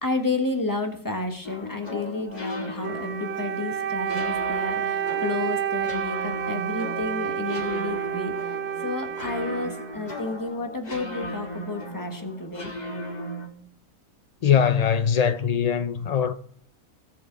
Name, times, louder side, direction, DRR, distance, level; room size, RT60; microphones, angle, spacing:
voice 1, 0.0-8.3 8.8-12.7, left 3 dB, 15° left, 1.3 m, -31 dB
sound 1, 1.4-13.5, left 1 dB, 30° left, 1.7 m, -36 dB
Wind instrument woodwind instrument, 2.8-10.4, right 9 dB, 60° right, 0.8 m, -30 dB
voice 2, 14.4-16.3, left 8 dB, 90° left, 0.3 m, -21 dB
19.0 x 6.8 x 4.0 m
omnidirectional pair, 1.5 m